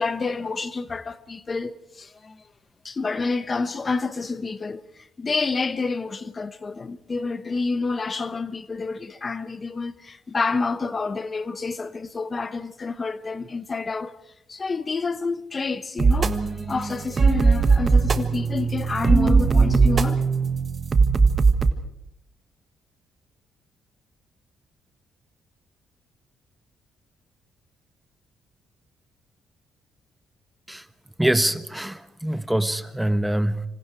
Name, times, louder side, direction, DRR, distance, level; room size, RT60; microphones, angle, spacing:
voice 1, 0.0-2.4 2.8-14.2 14.5-20.2, left 4 dB, 30° left, 1.0 m, -29 dB
sound 1, 16.0-21.7, right 4 dB, 40° right, 1.5 m, -19 dB
voice 2, 31.2-33.6, right 1 dB, 5° right, 1.1 m, -24 dB
26.5 x 26.0 x 4.7 m
cardioid pair, 90°, 0 cm